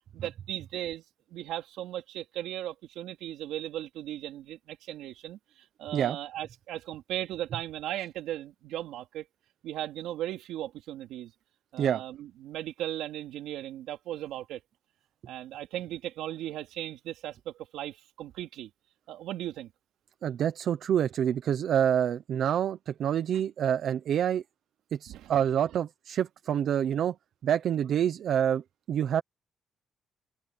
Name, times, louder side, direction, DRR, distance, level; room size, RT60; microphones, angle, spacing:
voice 1, 0.1-1.0 1.3-5.4 5.8-9.3 9.6-11.3 11.7-14.6 15.3-18.7 19.1-19.7 25.1-25.4, right 13 dB, 90° right, 3.0 m, -37 dB
voice 2, 20.2-24.4 25.0-27.1 27.4-28.6 28.9-29.2, right 9 dB, 65° right, 1.0 m, -27 dB
open air
cardioid pair, 90°, 0 cm